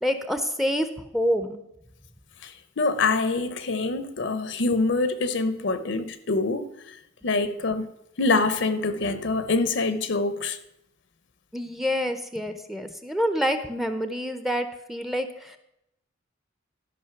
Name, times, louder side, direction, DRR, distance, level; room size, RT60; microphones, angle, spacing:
voice 1, 0.0-1.6 11.5-15.6, equal, ahead, 0.6 m, -27 dB
voice 2, 2.4-7.0 7.2-7.9 8.2-10.6, left 3 dB, 65° left, 0.8 m, -25 dB
13.0 x 5.4 x 5.8 m
head